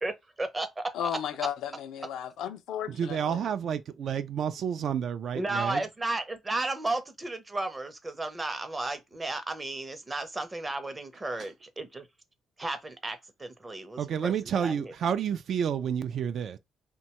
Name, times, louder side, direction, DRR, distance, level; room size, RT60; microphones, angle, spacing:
voice 1, 0.4-1.1 5.3-12.1 12.6-14.9, right 2 dB, 20° right, 0.6 m, -34 dB
voice 2, 0.9-3.4, left 9 dB, 85° left, 0.4 m, -34 dB
voice 3, 2.9-5.8 11.4-11.5 14.0-16.6, right 8 dB, 65° right, 0.3 m, -30 dB
2.7 x 2.2 x 2.9 m
cardioid pair, 90°, 0 cm